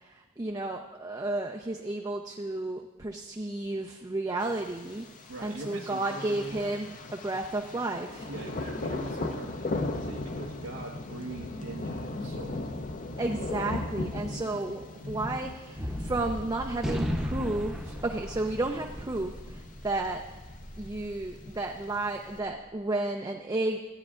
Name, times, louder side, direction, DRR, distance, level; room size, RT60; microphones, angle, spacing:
voice 1, 0.0-5.1 5.4-8.3 13.2-20.2 20.8-23.8, right 2 dB, 15° right, 2 dB, 0.4 m, -32 dB
Thunder, 4.4-22.4, left 2 dB, 35° left, 0.5 m, -38 dB
voice 2, 5.3-6.7 8.2-12.6, right 2 dB, 90° right, -4 dB, 1.1 m, -42 dB
Gunshot gunfire, 15.8-22.3, equal, ahead, 0.7 m, -36 dB
14.0 x 9.6 x 2.4 m, 1.3 s
head